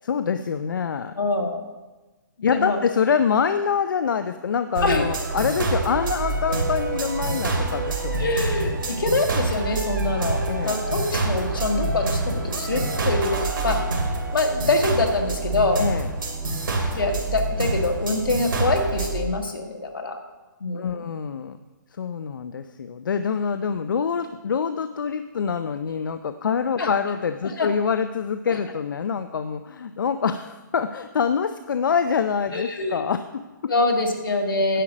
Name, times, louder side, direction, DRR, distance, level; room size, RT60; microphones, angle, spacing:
voice 1, 0.0-1.1 2.4-8.3 10.5-10.8 15.8-16.1 20.7-21.6 22.0-33.7, left 6 dB, 75° left, 10 dB, 0.5 m, -25 dB
voice 2, 1.1-1.6 2.5-2.8 4.8-5.1 8.2-13.8 14.3-15.9 16.9-20.2 20.6-20.9 26.8-26.9 27.6-27.7 32.5-33.0 33.7-34.8, left 2 dB, 90° left, 3 dB, 1.7 m, -24 dB
sound 1, 4.7-19.2, right 3 dB, 80° right, 2.3 m, -26 dB
10.0 x 7.5 x 5.0 m, 1.2 s
hypercardioid pair, 160°, 11 cm